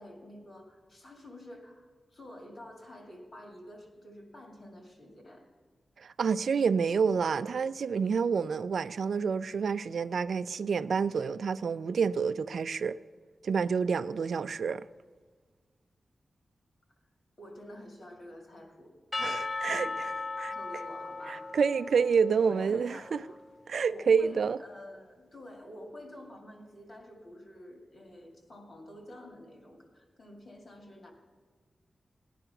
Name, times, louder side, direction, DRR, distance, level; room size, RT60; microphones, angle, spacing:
voice 1, 0.0-5.5 17.4-18.9 19.6-19.9 20.3-21.5 22.4-23.4 23.9-31.1, left 1 dB, 50° left, 2.5 m, -49 dB
voice 2, 6.0-13.0 13.4-14.8 19.2-19.9 20.4-20.5 21.3-23.2 23.7-24.6, right 6 dB, 75° right, 0.4 m, -28 dB
Percussion / Church bell, 19.1-23.5, left 3 dB, 25° left, 0.4 m, -37 dB
18.0 x 10.0 x 5.9 m
wide cardioid pair, 140°, 0 cm